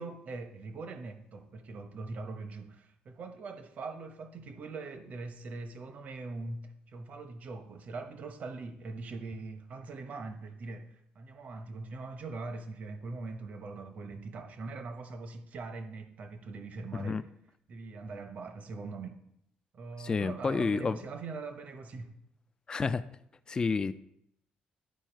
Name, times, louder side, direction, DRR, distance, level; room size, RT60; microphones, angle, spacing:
voice 1, 0.0-17.2 17.7-19.2 19.7-22.2, right 3 dB, 50° right, 7 dB, 1.0 m, -42 dB
voice 2, 20.0-21.0 22.7-23.0 23.5-23.9, left 4 dB, 25° left, 12 dB, 0.4 m, -29 dB
10.5 x 4.6 x 4.6 m, 0.73 s
cardioid pair, 120°, 3 cm